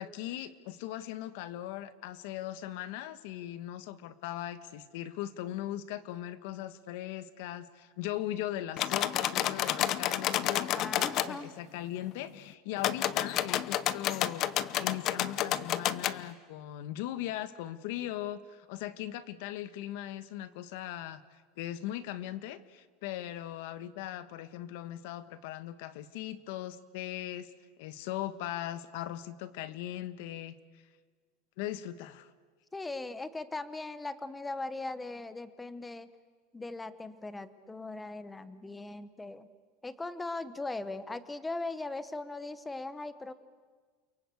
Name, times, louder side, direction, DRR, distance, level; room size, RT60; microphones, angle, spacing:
voice 1, 0.0-14.5 14.8-21.2 21.6-27.5 27.8-30.6 31.6-32.3, left 13 dB, 60° left, 13 dB, 1.3 m, -39 dB
sound 1, 8.8-11.3 12.8-16.2, left 12 dB, 35° left, 0.8 m, -30 dB
voice 2, 10.7-11.5 32.7-36.1 36.5-39.5 39.8-43.3, left 2 dB, 10° left, 13 dB, 1.0 m, -39 dB
29.5 x 23.0 x 8.4 m, 1.5 s
supercardioid pair, 165°, 0 cm